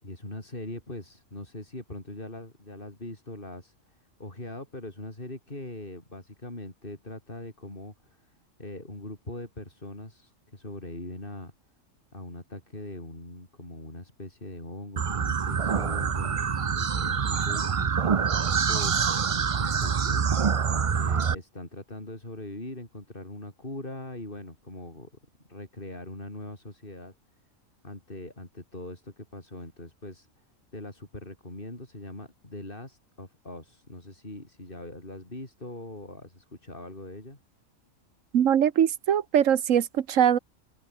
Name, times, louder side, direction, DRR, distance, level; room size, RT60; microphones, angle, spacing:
voice 1, 0.0-11.5 12.1-19.2 19.6-20.3 20.9-25.1 25.5-27.1 27.8-30.4 30.7-37.4, left 1 dB, 40° left, 5.1 m, -41 dB
sound 1, 15.0-21.3, right 6 dB, 40° right, 0.5 m, -26 dB
voice 2, 38.3-40.4, right 9 dB, 80° right, 1.3 m, -22 dB
omnidirectional pair, 1.3 m